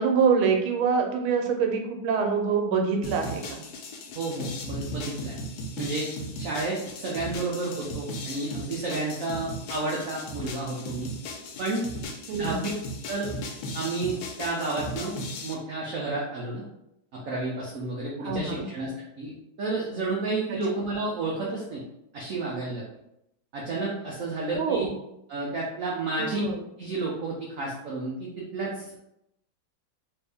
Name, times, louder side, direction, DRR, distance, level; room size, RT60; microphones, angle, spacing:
voice 1, 0.0-3.6 12.3-12.7 18.2-18.7 24.5-24.9 26.2-26.6, right 5 dB, 90° right, 3 dB, 1.5 m, -25 dB
sound 1, 3.0-15.5, left 1 dB, 90° left, 1.4 m, -37 dB
voice 2, 4.2-5.3 5.8-6.1 6.4-11.1 11.6-11.9 12.4-12.7 13.1-13.3 13.7-15.1 15.4-16.6 17.2-18.9 19.2-19.3 19.6-21.8 22.1-22.8 23.5-24.9 25.3-26.4 26.8-29.0, right 3 dB, 70° right, -4 dB, 0.7 m, -31 dB
3.3 x 2.7 x 3.4 m, 0.83 s
omnidirectional pair, 2.2 m